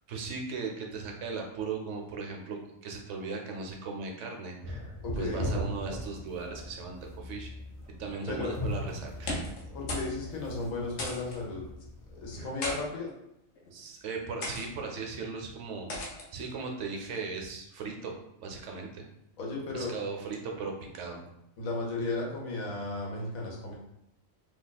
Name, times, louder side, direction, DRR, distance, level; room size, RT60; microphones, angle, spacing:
voice 1, 0.1-7.5 8.0-9.3 13.7-16.0 16.3-19.1 19.7-21.3, right 4 dB, 70° right, 2 dB, 0.9 m, -38 dB
sound 1, 4.6-12.4, left 1 dB, 35° left, 0.5 m, -39 dB
voice 2, 5.0-5.5 8.0-8.5 9.7-11.7 12.1-13.1 19.4-19.9 21.6-23.7, left 3 dB, 90° left, -2 dB, 1.3 m, -35 dB
sound 2, 9.1-9.6 9.9-10.1 10.4-10.5 11.0-11.4 12.3-12.8 13.6-13.8 14.4-14.7 15.9-16.3, left 1 dB, 60° left, 1.0 m, -35 dB
2.8 x 2.3 x 4.0 m, 0.82 s
omnidirectional pair, 1.4 m